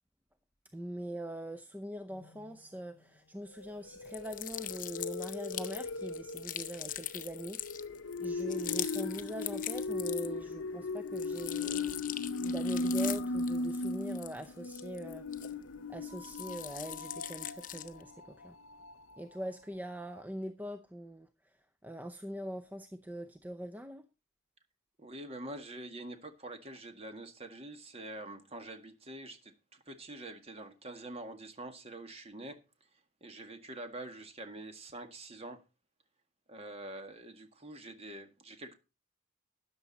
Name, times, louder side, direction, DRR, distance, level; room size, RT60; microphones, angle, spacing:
voice 1, 0.7-12.0 12.4-15.3 15.9-18.6 19.2-24.0, equal, 10° right, 0.6 m, -42 dB
sound 1, 2.2-2.4 3.5-19.4 19.9-20.0 20.2-20.3, left 2 dB, 70° left, 0.7 m, -38 dB
sound 2, 4.0-10.5 10.9-15.8 16.1-18.0, left 12 dB, 40° left, 0.8 m, -42 dB
voice 2, 25.0-32.6 33.2-35.6 36.5-38.7, right 1 dB, 30° right, 1.7 m, -45 dB
13.0 x 9.5 x 4.1 m
head